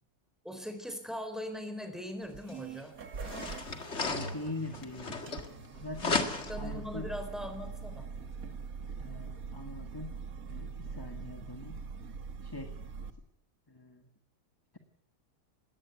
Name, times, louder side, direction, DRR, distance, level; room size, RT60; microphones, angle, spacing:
voice 1, 0.4-2.9 6.5-8.1, left 1 dB, ahead, 7 dB, 3.8 m, -40 dB
sound 1, 2.2-13.1, right 5 dB, 60° right, 1.9 m, -43 dB
sound 2, 2.5-2.6 3.2-5.7 6.0-6.7, left 4 dB, 45° left, 2.2 m, -34 dB
voice 2, 4.1-5.4 5.7-6.2 6.6-7.1 9.0-10.1 10.5-11.8 12.4-12.7 13.7-14.1, left 2 dB, 15° left, 6 dB, 1.5 m, -42 dB
20.0 x 17.0 x 8.2 m, 0.71 s
omnidirectional pair, 1.7 m